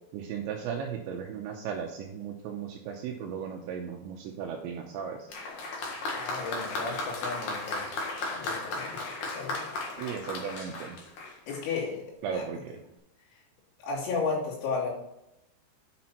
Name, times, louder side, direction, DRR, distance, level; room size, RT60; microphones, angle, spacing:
voice 1, 0.1-5.3 10.0-11.0 12.2-12.8, right 7 dB, 90° right, 2 dB, 2.6 m, -36 dB
Applause, 5.3-11.8 12.7-12.8, left 2 dB, 65° left, 2.1 m, -35 dB
voice 2, 6.1-9.0 9.3-9.6 11.5-12.0 12.3-12.4 13.8-14.9, left 4 dB, 80° left, -5 dB, 5.6 m, -34 dB
9.5 x 6.0 x 4.3 m, 0.85 s
omnidirectional pair, 6.0 m